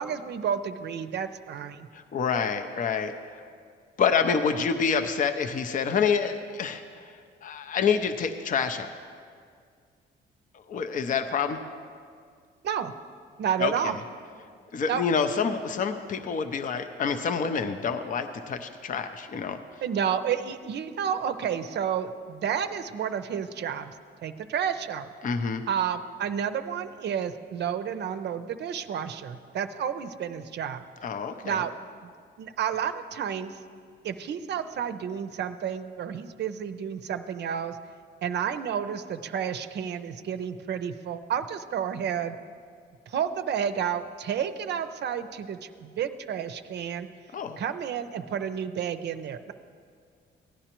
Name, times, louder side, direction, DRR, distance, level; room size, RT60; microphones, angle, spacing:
voice 1, 0.0-1.9 12.6-12.9 13.4-13.9 14.9-15.0 19.8-23.9 24.2-25.1 25.7-30.8 31.4-32.1 32.4-33.6 34.0-37.8 38.2-42.4 43.1-47.1 47.6-49.5, right 8 dB, 60° right, 10 dB, 0.5 m, -31 dB
voice 2, 1.9-3.1 4.0-8.9 10.5-11.6 13.6-13.9 14.7-19.6 25.2-25.7 31.0-31.7 47.3-47.6, left 6 dB, 40° left, 7 dB, 0.5 m, -27 dB
16.0 x 9.9 x 3.0 m, 2.1 s
cardioid pair, 90°, 20 cm